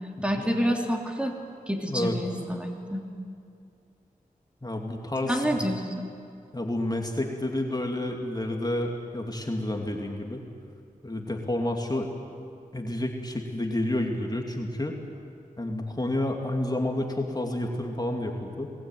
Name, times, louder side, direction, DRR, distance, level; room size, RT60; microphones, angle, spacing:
voice 1, 0.2-1.3 1.7-3.0 5.2-6.1, equal, 5° right, 2 dB, 3.2 m, -28 dB
voice 2, 4.6-5.6 6.5-10.4 11.0-12.1 12.7-15.0 15.6-18.7, left 1 dB, 25° left, 2 dB, 2.8 m, -30 dB
27.0 x 20.0 x 9.3 m, 2.4 s
wide cardioid pair, 60°, 15 cm